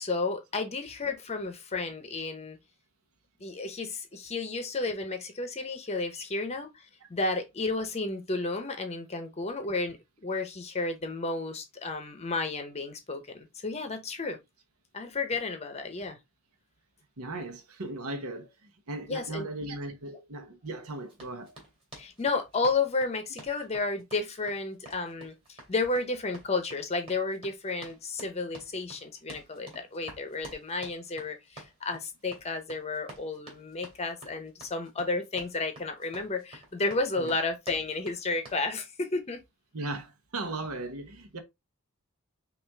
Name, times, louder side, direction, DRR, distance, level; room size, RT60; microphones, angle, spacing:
voice 1, 0.0-2.6 3.4-10.0 10.2-14.4 14.9-16.2 19.1-19.5 22.0-39.4, left 3 dB, 30° left, 0.7 m, -32 dB
voice 2, 17.2-21.6 37.2-37.4 39.7-41.4, right 2 dB, 80° right, 0.9 m, -37 dB
Run, 21.1-38.7, right 2 dB, 25° right, 2.3 m, -50 dB
5.7 x 2.5 x 3.4 m
head